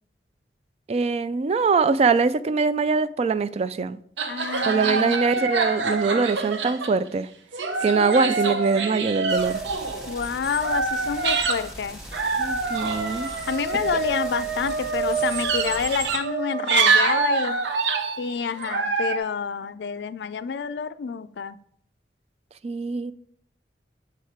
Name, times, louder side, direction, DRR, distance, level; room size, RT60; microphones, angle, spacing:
voice 1, 0.9-4.0 4.6-7.3 7.8-9.6 12.4-13.3 22.6-23.1, right 4 dB, 35° right, 0.3 m, -23 dB
sound 1, 4.2-7.1 7.5-11.7 12.1-19.2, right 4 dB, 85° right, 0.8 m, -25 dB
voice 2, 4.3-5.2 10.1-12.0 13.5-17.6 18.2-21.6, left 6 dB, 70° left, 0.4 m, -28 dB
sound 2, 9.3-16.2, equal, 5° right, 1.2 m, -41 dB
7.2 x 4.9 x 4.5 m
head